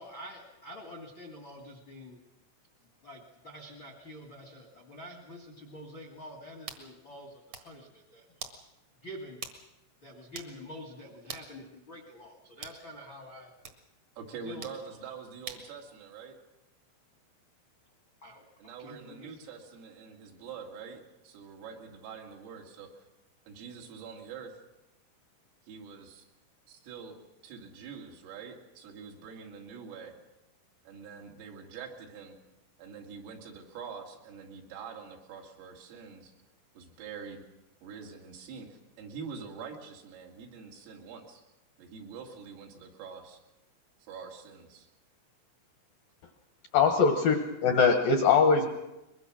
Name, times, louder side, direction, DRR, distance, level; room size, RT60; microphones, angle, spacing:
voice 1, 0.0-2.2 3.0-8.2 9.0-9.4 10.0-13.5 14.4-14.7 18.2-19.3 47.1-47.2, equal, 55° left, 4 dB, 1.3 m, -47 dB
sound 1, 6.7-6.9 7.3-7.7 8.4-8.6 9.4-9.6 9.9-10.0 10.3-10.6 11.3-11.5 12.6-12.8 13.6-13.8 14.6-14.8 15.5-15.7, right 6 dB, 55° right, 1.9 m, -42 dB
voice 2, 14.2-16.4 18.6-22.9 23.5-24.5 25.7-26.3 26.7-27.2 27.4-30.1 30.9-32.3 32.8-36.3 36.8-37.4 37.8-41.4 41.8-43.4 44.1-44.9, right 6 dB, 85° right, 1 dB, 5.1 m, -45 dB
voice 3, 46.7-48.7, left 5 dB, 70° left, 5 dB, 2.1 m, -22 dB
22.5 x 22.5 x 6.3 m, 0.98 s
omnidirectional pair, 5.7 m